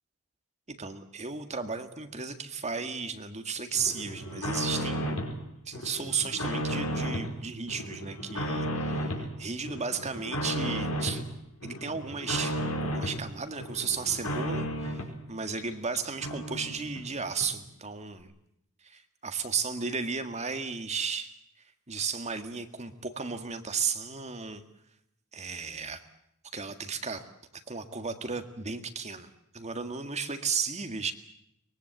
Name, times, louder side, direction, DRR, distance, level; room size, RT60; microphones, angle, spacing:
voice 1, 0.7-5.3 5.7-11.2 11.6-18.3 18.8-21.4 21.9-24.6 25.3-26.0 26.5-27.3 27.7-31.1, right 5 dB, 30° right, 7 dB, 1.8 m, -34 dB
sound 1, 3.7-5.4 5.7-7.3 7.7-9.3 9.6-11.2 11.6-13.2 13.6-15.1 15.6-15.7 15.9-17.1 17.4-17.5, equal, 75° left, 5.1 m, -33 dB
23.5 x 21.0 x 8.0 m, 0.76 s
head